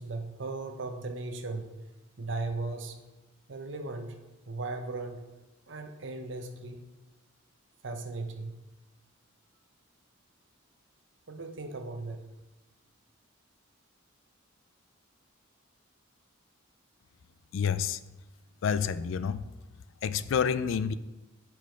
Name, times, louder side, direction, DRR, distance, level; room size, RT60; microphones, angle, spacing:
voice 1, 0.0-1.7 2.2-3.0 3.5-4.2 4.5-5.2 5.7-6.9 7.8-8.6 11.3-12.2, right 3 dB, 60° right, 0.7 m, -37 dB
voice 2, 17.5-18.0 18.6-19.5 20.0-20.9, left 7 dB, 70° left, 0.3 m, -28 dB
7.1 x 4.6 x 4.5 m
head